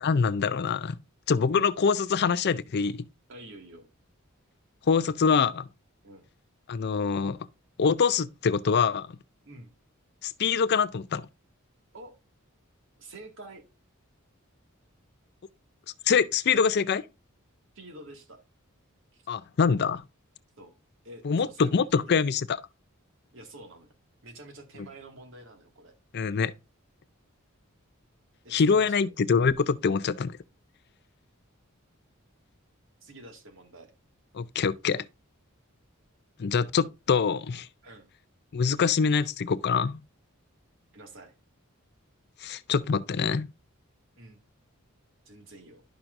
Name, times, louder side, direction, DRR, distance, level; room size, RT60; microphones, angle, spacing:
voice 1, 0.0-1.0 1.3-3.0 4.9-5.7 6.7-7.4 7.8-9.2 10.2-11.2 16.1-17.0 19.3-20.0 21.2-22.6 26.1-26.5 28.5-30.4 34.3-35.1 36.4-37.7 38.5-40.0 42.4-43.5, left 5 dB, 50° left, 0.5 m, -25 dB
voice 2, 3.3-3.9 6.0-6.3 9.4-9.7 11.9-12.1 13.0-13.6 17.7-18.4 19.1-19.2 20.6-20.7 21.0-22.2 23.3-23.9 24.2-25.9 28.4-29.1 33.0-33.9 37.8-38.1 40.9-41.3 44.2-44.4 45.3-45.8, right 1 dB, 65° right, 2.1 m, -48 dB
11.5 x 5.9 x 2.6 m
head